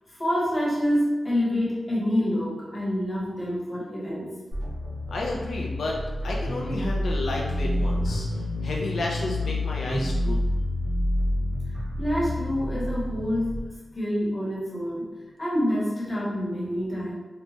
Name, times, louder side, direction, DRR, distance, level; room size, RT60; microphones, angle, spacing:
voice 1, 0.1-4.4 12.0-13.6 13.9-15.1 15.4-17.2, equal, 20° left, -6 dB, 0.9 m, -27 dB
sound 1, 4.5-13.6, left 1 dB, 45° right, 0.8 m, -28 dB
voice 2, 5.1-10.4, left 2 dB, 80° left, -2 dB, 0.4 m, -32 dB
2.9 x 2.1 x 2.7 m, 1.3 s
wide cardioid pair, 135°, 0 cm